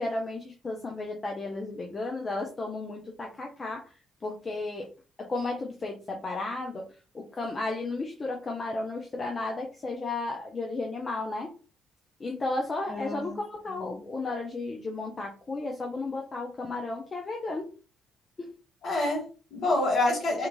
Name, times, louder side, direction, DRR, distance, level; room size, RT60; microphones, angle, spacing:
voice 1, 0.0-3.9 4.2-4.9 5.2-6.8 7.1-11.5 12.2-17.7 18.4-18.5, left 2 dB, 35° left, 1 dB, 0.5 m, -33 dB
voice 2, 12.9-13.4 13.7-14.0 18.8-20.5, left 2 dB, 55° left, -1 dB, 1.1 m, -28 dB
2.9 x 2.4 x 2.3 m, 0.36 s
figure-of-eight pair, 45°, 0 cm